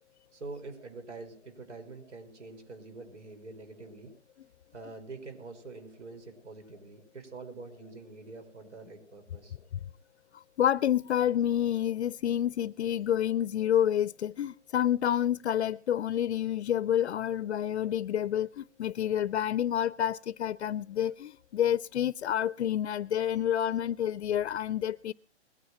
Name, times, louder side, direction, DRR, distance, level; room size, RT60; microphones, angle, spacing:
voice 1, 0.3-4.1 4.7-9.6, right 3 dB, 75° right, 5.5 m, -45 dB
voice 2, 10.3-25.1, left 10 dB, 70° left, 0.6 m, -29 dB
21.0 x 9.7 x 4.2 m
hypercardioid pair, 170°, 35 cm